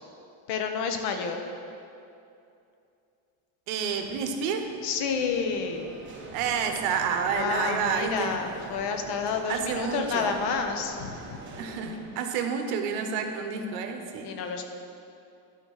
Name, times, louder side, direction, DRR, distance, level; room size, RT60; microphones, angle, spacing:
voice 1, 0.5-1.4 4.8-5.9 7.3-11.6 14.2-14.6, left 5 dB, 55° left, 5 dB, 1.0 m, -30 dB
voice 2, 3.7-4.7 6.3-8.4 9.5-10.3 11.5-14.3, right 6 dB, 70° right, 5 dB, 1.1 m, -29 dB
sound 1, 3.8-12.0, right 2 dB, 25° right, 1.3 m, -44 dB
11.5 x 4.1 x 6.4 m, 2.6 s
cardioid pair, 140°, 47 cm